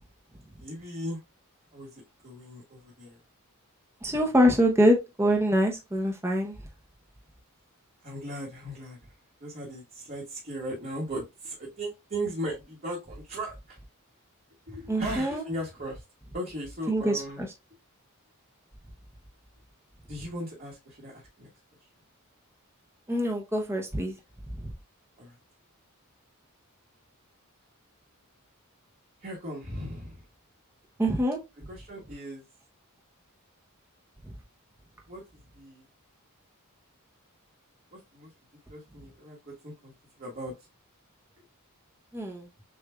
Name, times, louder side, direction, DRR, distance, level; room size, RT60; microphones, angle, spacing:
voice 1, 0.6-1.2 1.7-3.2 8.0-9.0 9.4-13.8 14.7-16.0 16.3-17.5 20.1-21.5 25.2-25.3 29.2-30.2 31.7-32.4 35.1-35.2 35.5-35.8 37.9-38.3 38.7-39.9 40.2-40.5, right 1 dB, 40° right, 1.3 m, -37 dB
voice 2, 4.0-6.6 14.9-15.4 16.9-17.5 23.1-24.1 24.6-24.7 31.0-31.4 42.1-42.5, equal, 10° right, 0.6 m, -24 dB
6.5 x 2.5 x 2.2 m
head